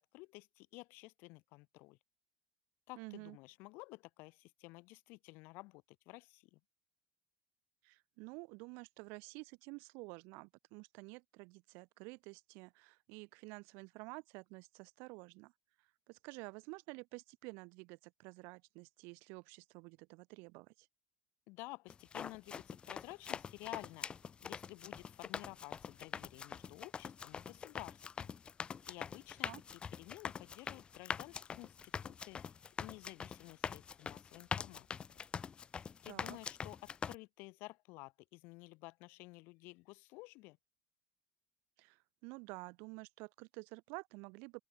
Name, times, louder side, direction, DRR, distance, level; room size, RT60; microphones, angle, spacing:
voice 1, 0.0-2.0 2.9-6.6 21.5-24.1 24.4-28.3 28.9-29.5 30.0-34.9 36.0-40.6, left 24 dB, 65° left, 4.5 m, -52 dB
voice 2, 2.9-3.4 7.8-15.5 15.8-20.9 29.4-29.6 36.1-36.4 41.8-44.6, right 30 dB, 70° right, 4.9 m, -51 dB
sound 1, 21.9-37.1, left 6 dB, 25° left, 5.3 m, -44 dB
open air
supercardioid pair, 120°, 4 cm